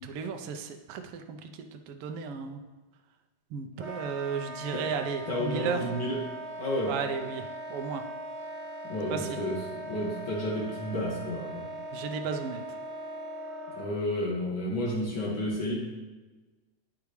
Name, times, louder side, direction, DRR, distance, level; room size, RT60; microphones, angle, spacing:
voice 1, 0.0-2.6 3.5-5.8 6.9-8.0 9.1-9.4 11.9-12.6, right 5 dB, 80° right, 5 dB, 1.3 m, -34 dB
Wind instrument woodwind instrument, 3.8-13.9, right 1 dB, 20° right, 1.1 m, -40 dB
voice 2, 5.3-6.2 6.6-6.9 8.8-11.6 13.7-15.7, left 1 dB, 45° left, -4 dB, 2.3 m, -31 dB
9.5 x 8.4 x 3.2 m, 1.2 s
omnidirectional pair, 3.5 m